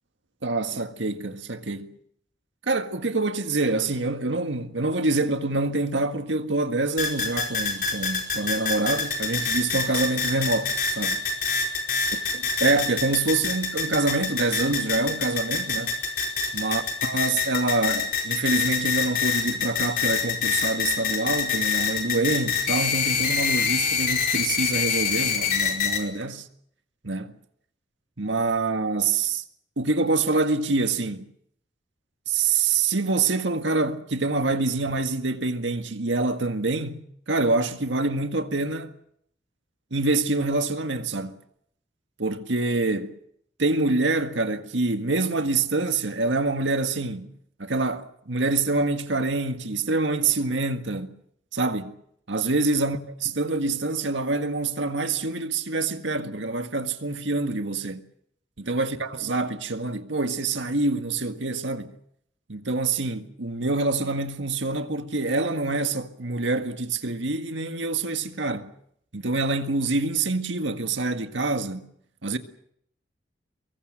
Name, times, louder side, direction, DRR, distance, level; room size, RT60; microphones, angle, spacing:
voice 1, 0.4-2.0 2.7-11.2 12.3-15.9 16.5-26.5 27.0-27.4 28.2-29.4 29.8-31.3 32.3-38.9 39.9-41.4 42.2-43.2 43.6-47.3 47.6-51.2 51.5-51.9 52.3-58.0 58.7-61.9 62.5-68.7 69.1-71.9 72.2-72.4, right 3 dB, 90° right, 1.8 m, -26 dB
sound 1, 7.0-26.0, left 5 dB, 45° left, 4.7 m, -26 dB
24.5 x 22.5 x 6.6 m
head